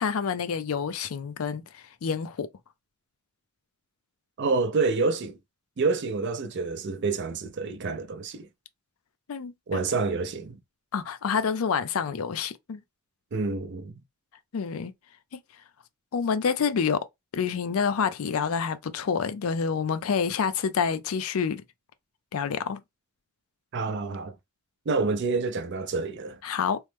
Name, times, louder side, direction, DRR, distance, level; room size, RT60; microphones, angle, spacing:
voice 1, 0.0-2.5 9.3-9.8 10.9-12.8 14.5-14.9 16.1-17.0 17.3-21.6 22.3-22.8 26.4-26.8, left 6 dB, 80° left, 0.4 m, -28 dB
voice 2, 4.4-5.4 5.8-8.5 9.7-10.6 13.3-14.0 23.7-24.3 24.9-26.4, right 4 dB, 55° right, 0.5 m, -28 dB
3.1 x 2.0 x 3.2 m
head